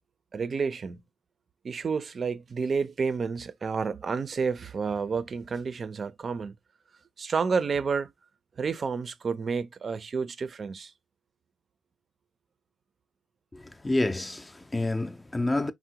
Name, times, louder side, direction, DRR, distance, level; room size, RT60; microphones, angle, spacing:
voice 1, 0.3-1.0 1.6-6.5 7.2-8.1 8.6-10.9, right 5 dB, 50° right, 0.4 m, -30 dB
voice 2, 13.5-15.7, left 2 dB, 20° left, 0.4 m, -28 dB
3.6 x 2.0 x 2.8 m
supercardioid pair, 65°, 0 cm